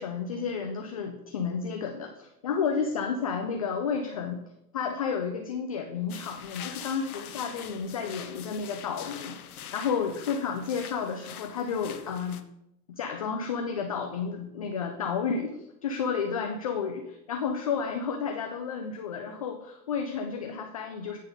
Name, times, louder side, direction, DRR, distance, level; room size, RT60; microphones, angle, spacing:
voice 1, 0.0-4.4 4.7-9.4 9.7-12.4 12.9-21.2, left 6 dB, 25° left, 3 dB, 0.3 m, -31 dB
sound 1, 6.1-12.4, left 9 dB, 60° left, 0.9 m, -44 dB
9.0 x 3.7 x 5.2 m, 0.82 s
figure-of-eight pair, 100°, 49 cm